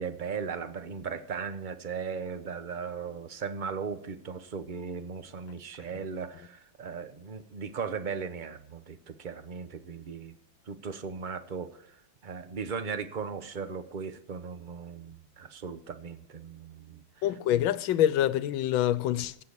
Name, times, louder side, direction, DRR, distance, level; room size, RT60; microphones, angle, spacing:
voice 1, 0.0-10.3 10.7-11.9 12.2-17.0, right 6 dB, 35° right, 0.8 m, -37 dB
voice 2, 17.2-19.4, left 11 dB, 85° left, 1.5 m, -26 dB
16.0 x 6.9 x 8.2 m
omnidirectional pair, 2.1 m